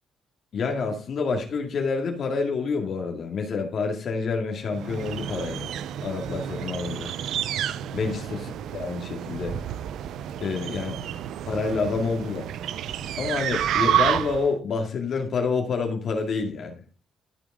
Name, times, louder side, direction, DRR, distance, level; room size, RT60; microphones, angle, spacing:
voice 1, 0.5-5.7 6.0-7.1 7.9-9.6 10.4-11.0 11.5-12.5 13.2-16.8, left 4 dB, 60° left, 2 dB, 2.1 m, -28 dB
sound 1, 4.7-14.5, right 10 dB, 75° right, 0.5 m, -30 dB
13.0 x 5.2 x 4.9 m, 0.39 s
cardioid pair, 90°, 0 cm